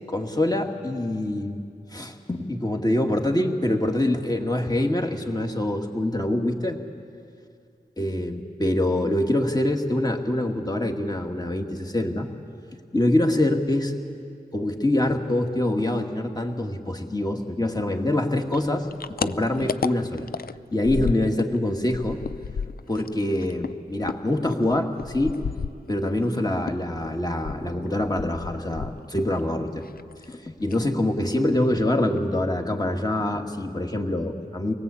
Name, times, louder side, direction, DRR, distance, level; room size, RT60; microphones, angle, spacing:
voice 1, 0.1-6.8 8.0-12.3 12.9-13.9 14.5-18.9 19.2-20.3 20.7-22.2 22.9-25.4 25.9-29.9 30.3-34.7, left 1 dB, 25° left, 3 dB, 2.0 m, -25 dB
sound 1, 18.5-21.6 21.8-26.3 26.6-29.4 29.6-30.3 30.6-30.9 31.2-31.3 31.6-32.2, left 6 dB, 65° left, 0.5 m, -33 dB
23.5 x 18.5 x 8.5 m, 2.3 s
wide cardioid pair, 65°, 16 cm